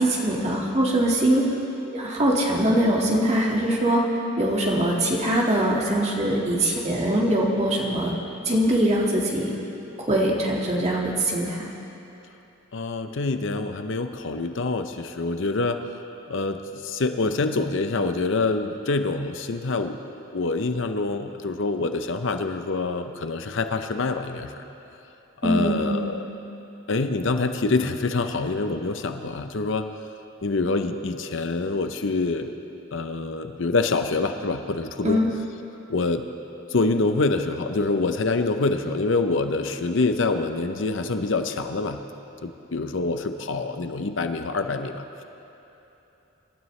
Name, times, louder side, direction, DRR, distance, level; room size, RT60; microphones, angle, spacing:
voice 1, 0.0-1.4 1.9-4.0 4.4-8.1 8.5-9.5 10.0-11.7 25.4-26.1 35.0-35.3, right 1 dB, 35° right, -2 dB, 2.0 m, -22 dB
voice 2, 12.7-15.8 16.3-24.6 25.4-26.3 26.9-29.9 30.4-32.5 32.9-35.2 35.9-36.2 36.7-42.0 42.4-45.2, left 3 dB, 65° left, 7 dB, 0.7 m, -26 dB
25.5 x 12.5 x 3.3 m, 3.0 s
head